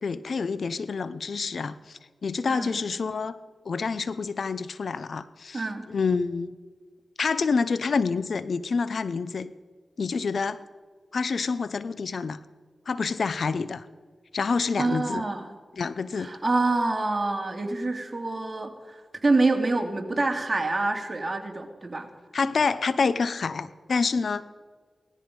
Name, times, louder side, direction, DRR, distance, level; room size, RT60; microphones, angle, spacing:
voice 1, 0.0-3.4 3.7-6.5 7.2-9.5 10.0-10.6 11.1-12.4 12.9-13.9 14.3-15.2 15.7-16.3 22.3-24.4, left 4 dB, 75° left, 15 dB, 0.7 m, -27 dB
voice 2, 5.5-5.9 14.8-15.5 16.2-22.1, right 2 dB, 40° right, 3 dB, 2.9 m, -26 dB
18.5 x 13.5 x 5.4 m, 1.5 s
cardioid pair, 45°, 0 cm